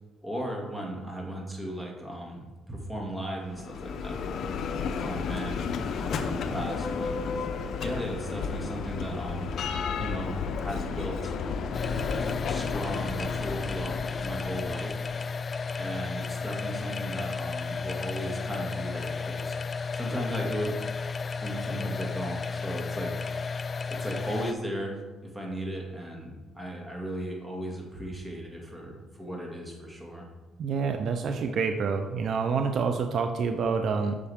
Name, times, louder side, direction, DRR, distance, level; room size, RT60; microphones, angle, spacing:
voice 1, 0.2-4.3 4.9-5.7 5.9-7.1 7.8-9.5 10.0-11.4 12.4-15.0 15.8-19.6 19.9-20.8 21.4-23.1 23.9-30.3, right 1 dB, 10° right, -1 dB, 2.3 m, -36 dB
Bell, 3.4-15.3, left 5 dB, 65° left, 0.6 m, -32 dB
sound 1, 11.7-24.5, left 4 dB, 35° left, 0.3 m, -33 dB
voice 2, 30.6-34.2, right 5 dB, 60° right, 5 dB, 0.6 m, -27 dB
8.7 x 6.7 x 3.6 m, 1.2 s
cardioid pair, 95°, 0 cm